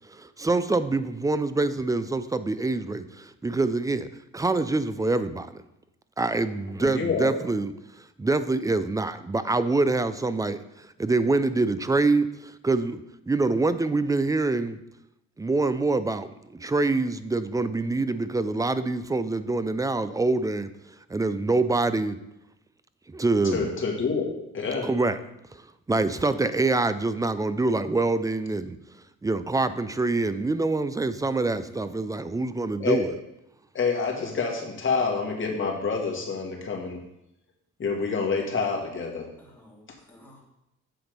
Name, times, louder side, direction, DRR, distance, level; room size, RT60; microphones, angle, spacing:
voice 1, 0.1-4.1 4.3-5.5 6.2-7.7 8.2-13.0 13.3-14.8 15.4-20.7 21.1-22.2 23.1-23.7 24.8-25.2 25.9-28.8 29.2-33.1, right 3 dB, 10° right, 12 dB, 0.4 m, -25 dB
voice 2, 6.8-7.3 23.5-24.9 32.8-33.1 33.7-37.0 37.8-39.3, left 4 dB, 40° left, 0 dB, 1.9 m, -27 dB
voice 3, 31.2-32.2 39.4-40.4, equal, 5° left, -4 dB, 2.5 m, -53 dB
7.8 x 4.0 x 5.2 m, 0.85 s
cardioid pair, 90°, 30 cm